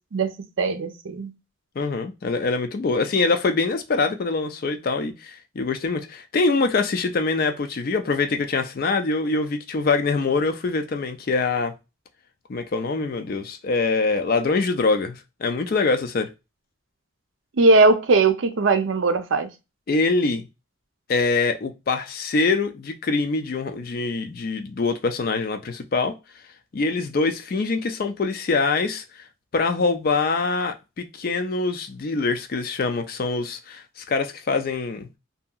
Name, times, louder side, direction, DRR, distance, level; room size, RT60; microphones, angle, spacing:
voice 1, 0.6-1.3 17.6-19.5, right 3 dB, 70° right, 0.5 m, -19 dB
voice 2, 1.8-11.7 12.5-16.3 19.9-20.4 21.1-26.1 26.7-29.0 29.5-35.1, left 3 dB, 45° left, 0.4 m, -24 dB
2.8 x 2.7 x 2.3 m
head